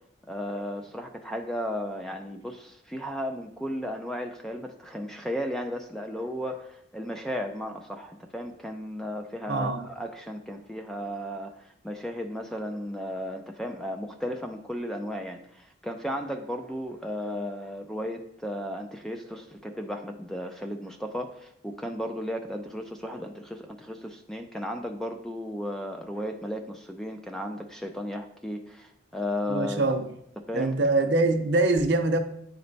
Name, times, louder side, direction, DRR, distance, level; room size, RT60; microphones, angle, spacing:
voice 1, 0.3-29.8 30.5-30.8, equal, 5° left, 0.4 m, -35 dB
voice 2, 9.5-9.9 29.5-30.1 30.5-32.2, right 2 dB, 60° right, 0.7 m, -24 dB
8.9 x 3.2 x 4.0 m
head